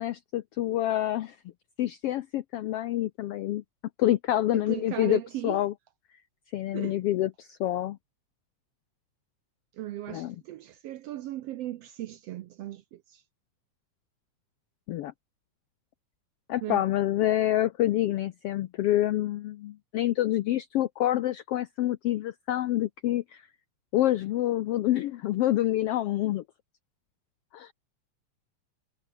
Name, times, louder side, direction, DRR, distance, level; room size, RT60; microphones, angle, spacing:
voice 1, 0.0-1.4 1.8-3.6 4.0-5.7 6.5-8.0 10.1-10.3 14.9-15.1 16.5-23.5 23.9-26.4 27.5-27.7, left 14 dB, 85° left, 1.3 m, -27 dB
voice 2, 4.5-5.6 6.7-7.0 9.7-13.2 16.6-16.9, right 14 dB, 75° right, 1.5 m, -37 dB
omnidirectional pair, 3.5 m